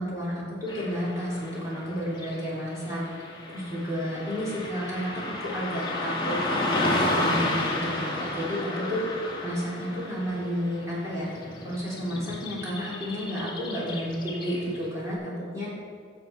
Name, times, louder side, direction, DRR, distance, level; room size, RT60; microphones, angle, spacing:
voice 1, 0.0-3.2 3.5-9.0 9.4-15.7, equal, 15° right, -8 dB, 3.4 m, -31 dB
Car passing by / Traffic noise roadway noise, 0.7-15.0, left 1 dB, 25° left, 1.5 m, -32 dB
16.5 x 7.0 x 4.6 m, 2.1 s
head